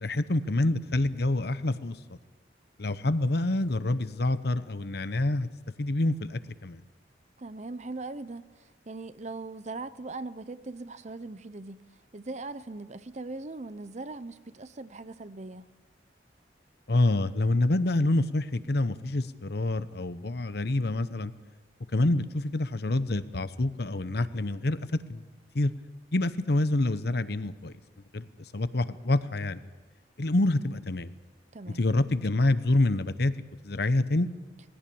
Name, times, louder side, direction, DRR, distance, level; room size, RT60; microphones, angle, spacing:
voice 1, 0.0-2.0 2.8-5.5 5.8-6.8 16.9-21.3 21.9-24.8 25.1-25.2 25.5-25.7 26.1-27.7 28.1-28.3 28.5-29.6 30.2-31.1 31.8-33.3 33.6-34.3, left 2 dB, 60° left, 0.9 m, -27 dB
voice 2, 7.4-11.9 12.1-15.7 31.5-31.8, right 3 dB, 40° right, 0.7 m, -40 dB
20.0 x 16.5 x 8.7 m
head